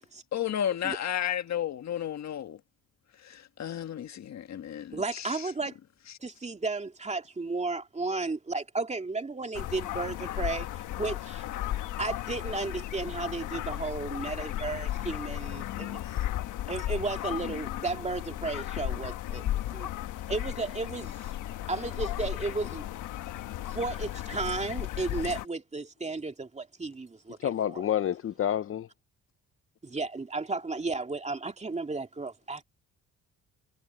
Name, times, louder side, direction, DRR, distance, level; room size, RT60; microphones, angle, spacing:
voice 1, 0.3-2.6 3.2-5.5 17.3-17.6, left 10 dB, 65° left, 1.8 m, -33 dB
voice 2, 4.9-5.8 6.2-11.5 12.0-16.1 16.7-19.9 20.3-21.3 21.7-22.8 23.7-27.4 27.7-27.8 29.8-32.6, right 3 dB, 20° right, 2.4 m, -34 dB
sound 1, 9.5-25.4, left 13 dB, 85° left, 1.2 m, -35 dB
voice 3, 27.4-28.9, left 10 dB, 45° left, 0.7 m, -28 dB
cardioid pair, 90°, 30 cm